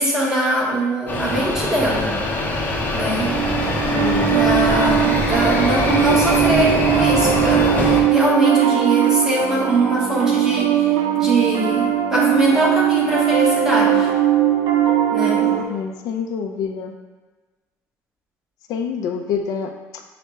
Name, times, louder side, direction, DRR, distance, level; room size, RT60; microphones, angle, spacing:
voice 1, 0.0-2.1 2.9-3.4 4.3-14.1 15.1-15.5, right 1 dB, 10° right, -5 dB, 1.0 m, -22 dB
sound 1, 1.1-8.0, left 1 dB, 25° left, 0.6 m, -22 dB
Piano, 3.2-15.6, right 11 dB, 80° right, 0.5 m, -19 dB
voice 2, 3.9-4.5 15.6-16.9 18.7-20.0, left 7 dB, 75° left, 4 dB, 0.4 m, -27 dB
5.7 x 2.1 x 4.4 m, 1.2 s
cardioid pair, 160°, 6 cm